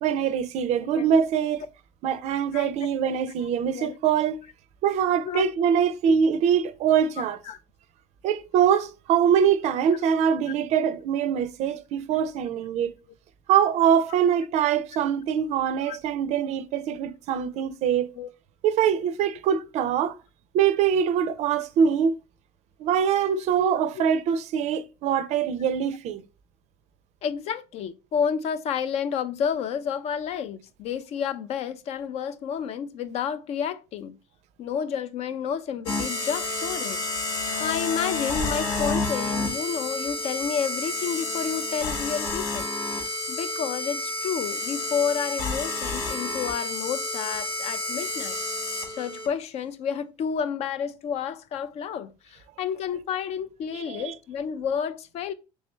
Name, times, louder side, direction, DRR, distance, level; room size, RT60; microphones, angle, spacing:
voice 1, 0.0-1.6 2.0-4.4 4.8-7.4 8.2-13.0 13.5-18.1 18.6-20.2 20.5-22.1 22.8-26.2 53.7-54.1, right 8 dB, 55° right, 0.4 m, -23 dB
voice 2, 2.5-2.9 3.4-3.9 5.2-5.5 6.1-6.2 7.2-7.6 9.9-10.0 15.8-16.0 17.6-17.7 18.2-18.3 23.6-23.7 23.9-24.0 27.2-34.2 34.6-37.1 37.6-42.7 43.3-48.4 48.9-55.3, left 7 dB, 50° left, 0.4 m, -30 dB
sound 1, 35.9-49.3, left 2 dB, 75° left, 1.4 m, -30 dB
3.4 x 3.2 x 3.1 m
supercardioid pair, 105°, 14 cm